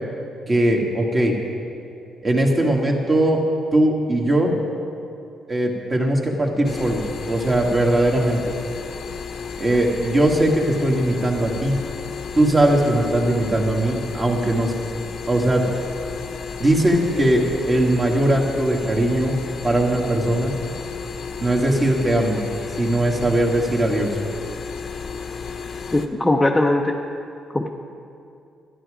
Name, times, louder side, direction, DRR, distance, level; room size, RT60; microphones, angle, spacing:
voice 1, 0.5-1.3 2.2-3.4 3.7-4.5 5.5-8.4 9.6-11.8 12.4-14.7 15.3-15.6 16.6-19.4 19.6-20.5 21.4-22.5 22.8-24.1, right 1 dB, 25° right, 0 dB, 2.0 m, -20 dB
sound 1, 6.6-26.1, left 6 dB, 55° left, 0.9 m, -33 dB
voice 2, 25.9-27.0 27.5-27.7, left 1 dB, 10° left, 0 dB, 0.8 m, -19 dB
12.5 x 11.5 x 5.0 m, 2.5 s
cardioid pair, 90°, 0 cm